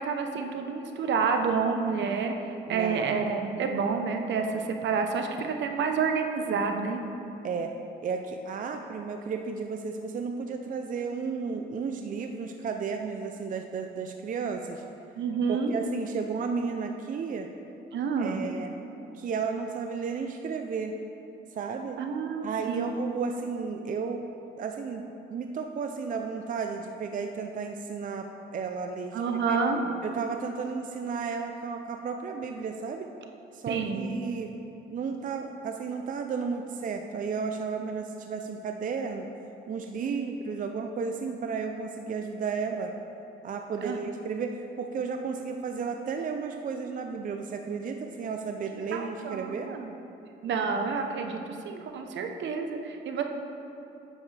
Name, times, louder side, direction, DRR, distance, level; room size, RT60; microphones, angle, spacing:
voice 1, 0.0-7.0 15.2-15.7 17.9-18.5 22.0-22.9 29.1-29.9 33.7-34.1 40.0-40.3 43.8-44.0 48.9-49.9 50.4-53.2, right 5 dB, 65° right, 4 dB, 0.8 m, -29 dB
voice 2, 2.7-3.2 7.4-7.7 8.0-14.8 15.5-17.5 18.2-18.7 19.1-21.0 21.5-22.0 22.4-24.2 24.6-29.2 29.5-29.6 30.0-33.1 33.5-34.5 34.9-39.3 39.7-42.9 43.4-49.7, right 5 dB, 40° right, 4 dB, 0.5 m, -33 dB
9.7 x 7.2 x 3.3 m, 2.8 s
cardioid pair, 90°, 20 cm